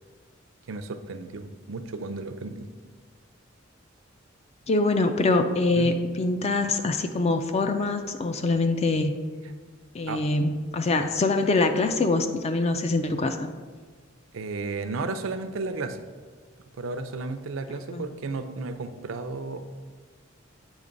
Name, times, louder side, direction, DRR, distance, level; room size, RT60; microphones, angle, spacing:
voice 1, 0.7-2.7 5.8-5.9 10.1-10.2 14.3-16.0 16.8-19.6, right 3 dB, 75° right, 9 dB, 0.5 m, -33 dB
voice 2, 4.7-9.2 9.9-13.5 17.9-18.0, left 2 dB, 30° left, 7 dB, 0.4 m, -24 dB
8.1 x 3.0 x 5.1 m, 1.5 s
head